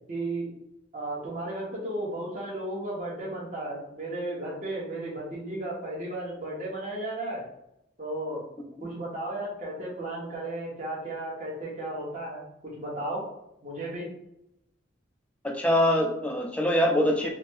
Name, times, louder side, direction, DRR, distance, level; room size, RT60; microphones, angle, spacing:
voice 1, 0.1-0.5 0.9-7.4 8.0-8.5 8.8-13.2 13.6-14.1, right 1 dB, 40° right, -5 dB, 1.1 m, -34 dB
voice 2, 15.4-17.3, equal, 5° left, 2 dB, 0.3 m, -24 dB
4.0 x 2.1 x 3.0 m, 0.82 s
head